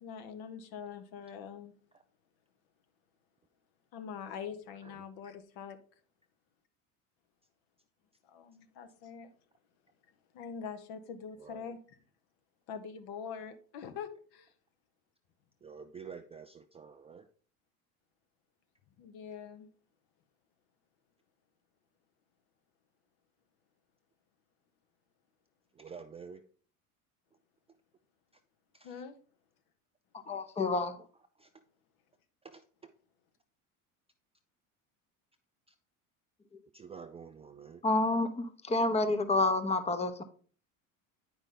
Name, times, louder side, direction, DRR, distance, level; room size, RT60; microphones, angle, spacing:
voice 1, 0.0-1.7 3.9-5.8 8.3-9.3 10.3-12.0 12.7-14.5 19.0-19.7 28.8-29.1, left 7 dB, 60° left, 8 dB, 1.2 m, -44 dB
voice 2, 11.4-11.7 15.6-17.3 25.8-26.4 28.7-29.0 31.4-31.5 32.4-32.9 36.7-37.8, right 6 dB, 15° right, 7 dB, 0.3 m, -49 dB
voice 3, 30.3-31.0 37.8-40.2, left 2 dB, 15° left, 10 dB, 0.8 m, -29 dB
8.8 x 5.1 x 3.8 m, 0.43 s
hypercardioid pair, 80°, 43 cm